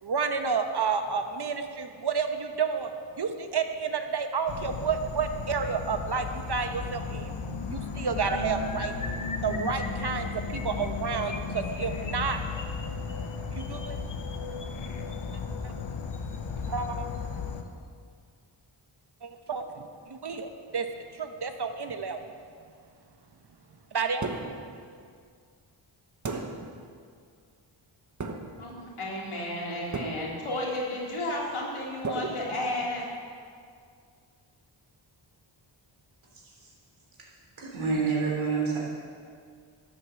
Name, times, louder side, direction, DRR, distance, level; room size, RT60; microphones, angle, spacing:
voice 1, 0.0-2.9 3.2-8.9 9.4-12.4 13.5-14.0 15.6-15.7 16.7-17.1 19.2-20.9 21.1-22.2 23.9-24.3, right 5 dB, 55° right, 7 dB, 1.1 m, -30 dB
Insect / Frog, 4.5-17.6, left 5 dB, 70° left, 1.1 m, -35 dB
sound 1, 8.2-15.4 16.1-16.4 16.6-16.9 17.1-17.4, left 3 dB, 40° left, 1.0 m, -42 dB
sound 2, 24.2-24.8 26.2-26.8 28.2-28.7 29.9-30.5 32.0-33.0, right 3 dB, 35° right, 1.1 m, -35 dB
voice 2, 28.6-33.1, left 1 dB, 90° left, -3 dB, 3.1 m, -32 dB
voice 3, 37.6-38.8, right 5 dB, 75° right, -3 dB, 3.6 m, -28 dB
12.5 x 8.3 x 7.0 m, 2.2 s
wide cardioid pair, 90°, 48 cm